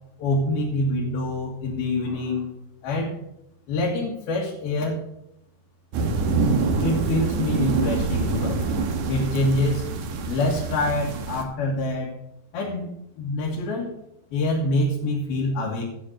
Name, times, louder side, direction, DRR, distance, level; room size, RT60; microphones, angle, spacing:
voice 1, 0.2-2.5 2.8-3.2 3.7-5.0 6.4-8.6 9.1-9.8 10.3-12.2 12.5-13.9 14.3-15.8, left 1 dB, 70° left, -4 dB, 3.6 m, -25 dB
sound 1, 5.9-11.4, right 4 dB, 65° right, 2.0 m, -25 dB
12.0 x 7.2 x 6.2 m, 0.80 s
omnidirectional pair, 4.7 m